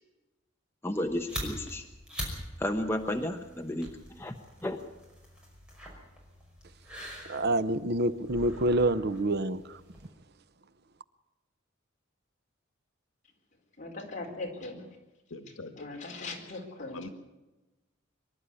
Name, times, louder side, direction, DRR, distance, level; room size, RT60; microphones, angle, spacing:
voice 1, 0.8-1.9 2.6-4.3 4.6-4.8, left 1 dB, 10° left, 1.0 m, -32 dB
sound 1, 0.9-10.1, equal, 5° right, 5.5 m, -44 dB
voice 2, 7.3-9.8, right 1 dB, 55° right, 0.8 m, -27 dB
voice 3, 13.2-15.0 15.8-17.1, left 2 dB, 40° left, 4.4 m, -41 dB
voice 4, 15.3-15.8 16.9-17.1, left 2 dB, 90° left, 1.6 m, -42 dB
24.5 x 12.0 x 9.8 m
head